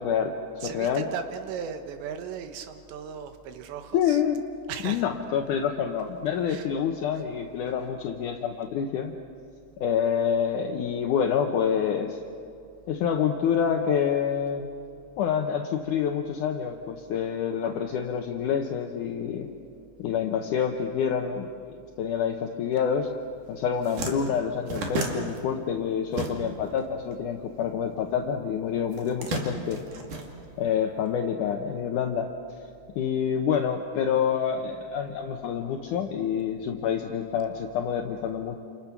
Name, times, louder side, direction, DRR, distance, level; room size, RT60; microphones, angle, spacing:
voice 1, 0.0-1.1 3.9-4.4 4.8-9.1 9.8-12.2 12.9-14.7 15.2-19.5 20.0-21.5 22.0-23.1 23.5-29.8 30.6-32.3 33.0-38.6, left 7 dB, 75° left, 4 dB, 1.9 m, -27 dB
voice 2, 0.6-4.2 4.7-5.1 6.5-6.7, right 7 dB, 90° right, 7 dB, 3.6 m, -37 dB
sound 1, 23.2-23.4 23.6-26.8 27.1-28.2 28.9-30.9, right 3 dB, 50° right, 3.5 m, -34 dB
29.5 x 29.0 x 6.0 m, 2.5 s
omnidirectional pair, 4.9 m